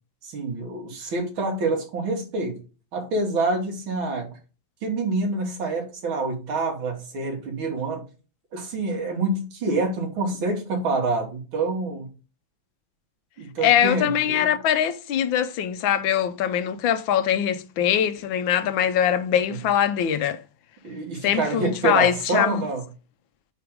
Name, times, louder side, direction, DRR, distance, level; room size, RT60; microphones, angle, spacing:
voice 1, 0.2-2.6 2.9-4.3 4.8-8.0 8.5-12.1 13.4-14.5 19.5-19.6 20.8-22.8, right 3 dB, 90° right, 2.4 m, -27 dB
voice 2, 13.6-20.4 21.2-22.6, left 9 dB, 80° left, 1.4 m, -22 dB
5.0 x 5.0 x 4.5 m
omnidirectional pair, 2.1 m